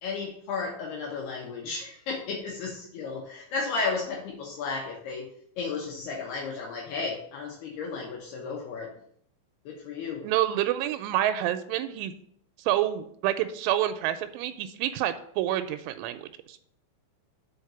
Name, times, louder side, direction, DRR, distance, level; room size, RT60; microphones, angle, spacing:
voice 1, 0.0-5.3 5.6-8.9 9.7-10.2, left 4 dB, 70° left, -1 dB, 2.8 m, -33 dB
voice 2, 10.2-12.1 12.7-16.6, right 12 dB, 90° right, 10 dB, 3.1 m, -28 dB
6.5 x 5.2 x 6.8 m, 0.66 s
omnidirectional pair, 5.5 m